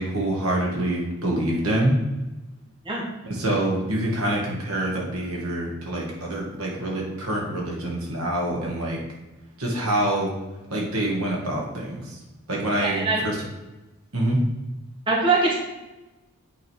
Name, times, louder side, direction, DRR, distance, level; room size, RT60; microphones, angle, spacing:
voice 1, 0.0-2.0 3.2-9.0 9.6-10.3 10.7-12.2 12.5-13.4 14.1-14.4, right 1 dB, 80° right, -2 dB, 2.0 m, -26 dB
voice 2, 12.8-13.2 15.1-15.5, right 3 dB, 25° right, -3 dB, 1.3 m, -22 dB
8.5 x 3.9 x 4.8 m, 1.1 s
head